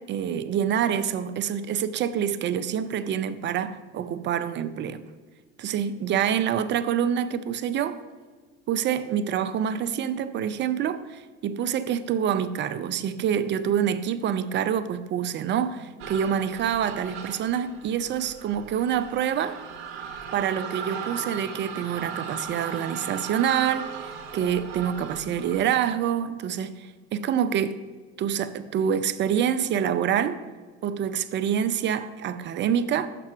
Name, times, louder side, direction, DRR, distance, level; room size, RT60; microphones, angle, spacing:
voice 1, 0.1-5.0 5.6-8.0 8.7-19.6 20.3-23.9 24.3-27.8 28.2-30.4 30.8-33.1, right 9 dB, 35° right, 13 dB, 0.5 m, -26 dB
sound 1, 16.0-25.6, right 6 dB, 75° right, 0.9 m, -38 dB
6.0 x 5.8 x 4.5 m, 1.4 s
hypercardioid pair, 80°, 33 cm